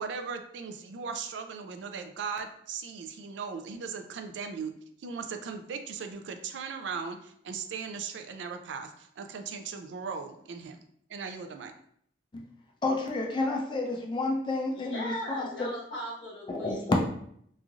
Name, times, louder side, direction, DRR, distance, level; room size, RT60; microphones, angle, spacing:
voice 1, 0.0-4.7 5.0-10.8 11.1-11.7, right 5 dB, 75° right, 6 dB, 0.4 m, -38 dB
voice 2, 12.8-15.7 16.5-17.0, left 2 dB, 25° left, 0 dB, 0.3 m, -30 dB
voice 3, 14.7-17.0, left 1 dB, 80° left, -5 dB, 1.2 m, -39 dB
3.0 x 2.5 x 2.4 m, 0.67 s
head